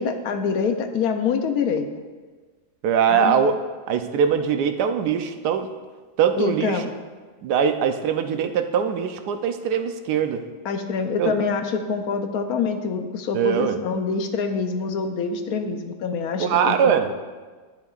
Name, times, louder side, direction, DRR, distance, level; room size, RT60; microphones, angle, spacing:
voice 1, 0.0-1.9 3.1-3.4 6.4-6.9 10.6-17.1, left 5 dB, 70° left, 6 dB, 1.1 m, -25 dB
voice 2, 2.8-3.6 3.9-5.7 6.2-6.8 7.4-10.4 11.2-11.3 13.3-13.8 16.4-17.1, right 7 dB, 85° right, 8 dB, 1.2 m, -22 dB
10.5 x 10.0 x 2.4 m, 1.4 s
omnidirectional pair, 1.7 m